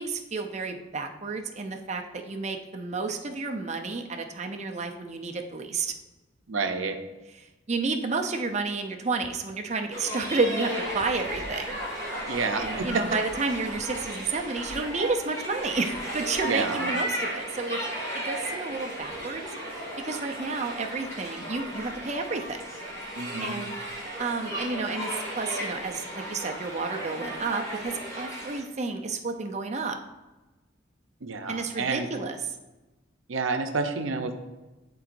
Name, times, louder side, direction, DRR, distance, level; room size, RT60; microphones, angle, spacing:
voice 1, 0.0-5.9 7.7-11.8 12.6-17.8 18.1-19.4 20.0-22.6 23.4-23.7 24.2-30.0 31.5-32.4, right 3 dB, 35° right, 4 dB, 0.5 m, -31 dB
voice 2, 6.5-7.0 12.3-13.0 16.4-16.9 23.1-23.6 31.2-32.1 33.3-34.3, right 4 dB, 80° right, 7 dB, 0.7 m, -29 dB
sound 1, 9.9-28.6, equal, 15° left, 2.0 m, -35 dB
11.5 x 3.9 x 2.6 m, 1.1 s
head